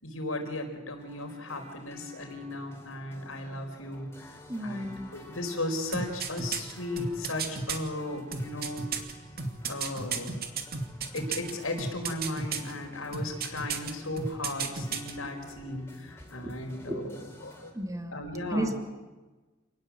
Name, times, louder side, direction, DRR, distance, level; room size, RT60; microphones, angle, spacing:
voice 1, 0.0-9.2 9.7-10.4 11.1-17.7 18.1-18.7, left 1 dB, 85° left, 5 dB, 4.9 m, -36 dB
sound 1, 1.0-17.7, left 1 dB, 15° left, 4.1 m, -51 dB
voice 2, 4.5-5.1 15.8-15.9 16.4-16.5 16.9-17.0 17.7-18.2 18.5-18.7, right 1 dB, 15° right, 5 dB, 2.7 m, -33 dB
sound 2, 5.9-7.8 8.3-11.5 11.8-12.7 13.1-13.9 14.2-15.1 15.4-15.5, right 5 dB, 50° right, 2.5 m, -32 dB
28.0 x 19.5 x 7.7 m, 1.2 s
head